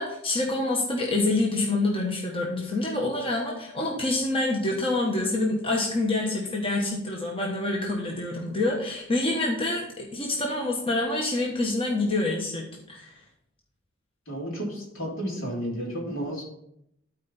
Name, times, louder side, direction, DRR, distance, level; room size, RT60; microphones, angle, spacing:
voice 1, 0.0-13.1, left 2 dB, 25° left, -1 dB, 1.2 m, -27 dB
voice 2, 14.3-16.4, equal, 70° left, -2 dB, 3.3 m, -32 dB
12.5 x 4.5 x 4.1 m, 0.76 s
head